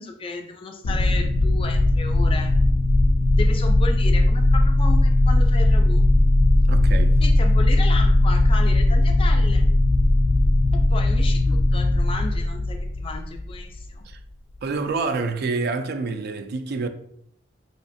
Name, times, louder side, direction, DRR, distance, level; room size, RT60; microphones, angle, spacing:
voice 1, 0.0-2.6 3.3-6.1 7.2-9.7 10.9-14.0, left 3 dB, 30° left, 0.4 m, -34 dB
sound 1, 0.8-13.8, left 1 dB, 85° left, 0.4 m, -18 dB
voice 2, 6.7-7.2 14.1-14.2 14.6-16.9, right 4 dB, 60° right, 0.3 m, -27 dB
5.1 x 2.4 x 2.6 m
head